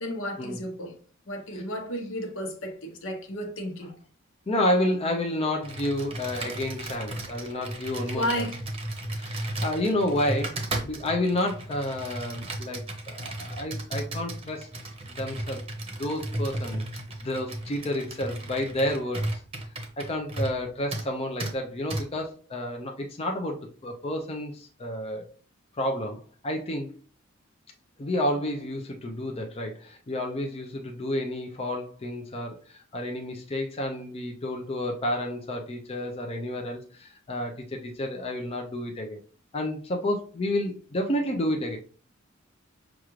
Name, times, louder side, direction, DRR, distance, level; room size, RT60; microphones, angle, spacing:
voice 1, 0.0-1.0 1.3-4.0 8.1-8.6, equal, 65° left, 1.0 m, -32 dB
voice 2, 4.5-8.5 9.1-14.7 15.1-15.6 16.0-16.8 17.2-19.3 20.0-25.3 25.8-26.9 28.0-39.2 39.5-41.8, left 1 dB, 30° left, 0.5 m, -30 dB
Computer keyboard, 5.6-20.6 20.9-21.1 21.4-21.5 21.9-22.0, right 1 dB, 30° right, 0.8 m, -34 dB
6.1 x 2.4 x 3.0 m
head